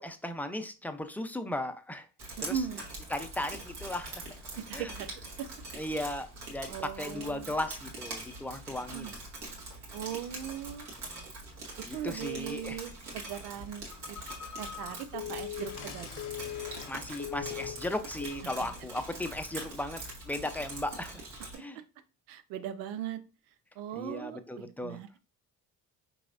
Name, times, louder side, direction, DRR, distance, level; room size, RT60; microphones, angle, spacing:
voice 1, 0.0-2.1 2.4-2.6 3.1-4.2 4.7-4.9 5.8-9.1 11.9-12.8 16.9-21.2 21.6-21.8 24.0-25.0, left 1 dB, 5° left, 8 dB, 0.5 m, -36 dB
Drip, 2.2-21.5, right 2 dB, 60° right, 1.6 m, -44 dB
voice 2, 2.4-2.8 4.6-5.1 5.4-5.5 6.7-7.6 8.9-9.2 9.9-10.9 11.9-14.2 14.6-16.2 18.6-18.7 21.5-21.7 22.3-23.2 23.8-25.2, right 9 dB, 80° right, 11 dB, 0.6 m, -39 dB
Telephone, 13.9-16.9 17.2-17.9 18.2-18.5, left 11 dB, 40° left, 0.8 m, -41 dB
Water tap faucet / Sink (filling or washing), 15.6-20.7, left 6 dB, 70° left, 0.7 m, -50 dB
4.7 x 3.1 x 2.5 m, 0.33 s
hypercardioid pair, 50°, 45 cm